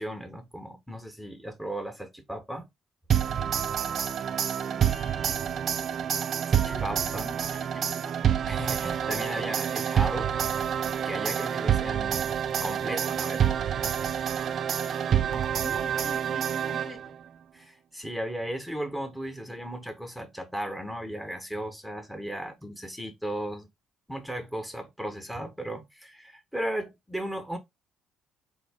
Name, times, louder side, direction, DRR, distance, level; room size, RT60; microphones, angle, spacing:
voice 1, 0.0-2.7 6.5-7.3 8.5-10.4 11.0-12.3 12.6-13.4 17.5-23.7 24.1-27.6, right 1 dB, ahead, 1.0 m, -36 dB
sound 1, 3.1-17.2, right 9 dB, 55° right, 0.4 m, -27 dB
voice 2, 4.8-6.0 6.6-8.2 8.7-8.8 10.1-10.5 14.9-17.2 19.5-19.6, left 2 dB, 25° left, 1.0 m, -46 dB
3.7 x 2.7 x 3.5 m
supercardioid pair, 75°, 0 cm